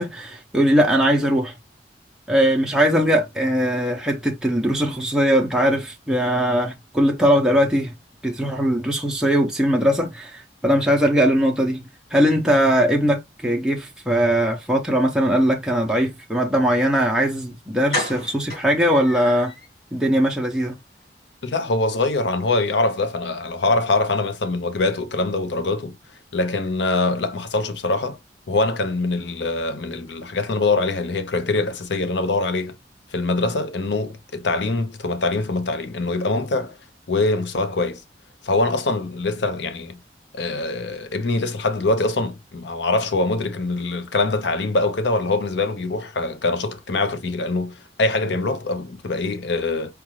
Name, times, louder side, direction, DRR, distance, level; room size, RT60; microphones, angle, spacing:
voice 1, 0.0-1.5 2.3-7.9 8.2-11.8 12.1-19.5 19.9-20.8, equal, 5° right, 0.6 m, -20 dB
sound 1, 17.2-17.3 17.9-19.7 20.0-20.1 20.5-20.7 20.9-21.0, left 1 dB, 55° left, 2.9 m, -31 dB
voice 2, 21.4-25.9 26.3-28.2 28.5-32.7 33.1-36.8 37.1-38.0 38.4-40.0 40.3-49.9, left 2 dB, 85° left, 0.7 m, -23 dB
4.6 x 2.5 x 3.1 m
head